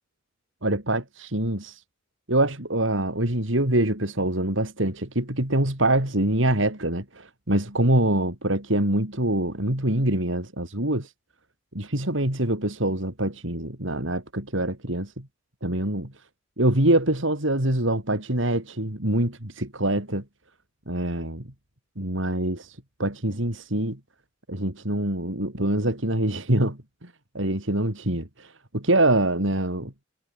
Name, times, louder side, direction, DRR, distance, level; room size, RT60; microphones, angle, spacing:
voice 1, 0.6-1.8 2.3-11.1 11.7-15.2 15.6-16.1 16.6-20.2 20.9-21.4 22.0-22.7 23.0-24.0 24.5-26.8 27.3-28.5 28.7-29.9, right 1 dB, 70° right, 4.8 m, -24 dB
head